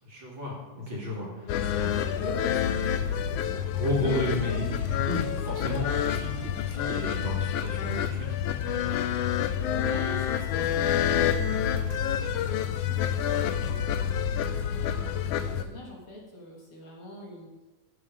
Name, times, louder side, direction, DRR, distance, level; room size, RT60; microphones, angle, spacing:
voice 1, 0.0-1.3 3.7-8.3, left 1 dB, 45° right, -4 dB, 3.4 m, -32 dB
sound 1, 1.5-15.6, left 9 dB, 75° left, 1.5 m, -28 dB
voice 2, 1.6-3.2 9.6-17.5, left 1 dB, 50° left, -2 dB, 2.6 m, -43 dB
14.0 x 7.9 x 5.1 m, 1.1 s
omnidirectional pair, 3.3 m